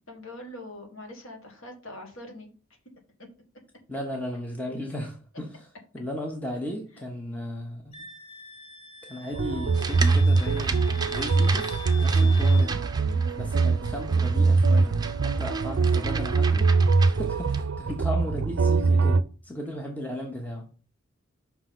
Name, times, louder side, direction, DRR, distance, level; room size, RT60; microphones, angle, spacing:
voice 1, 0.1-2.5 12.2-12.5, left 1 dB, 75° left, 2.0 m, -43 dB
voice 2, 3.9-5.7 5.9-7.8 9.0-12.8 13.3-16.7 17.1-20.7, left 1 dB, 10° left, 1.0 m, -35 dB
Wind instrument woodwind instrument, 7.9-12.7, left 5 dB, 30° left, 1.2 m, -44 dB
sound 1, 9.3-19.2, right 4 dB, 65° right, 0.5 m, -22 dB
sound 2, 9.7-17.6, right 4 dB, 20° right, 0.6 m, -36 dB
5.7 x 3.9 x 6.0 m
head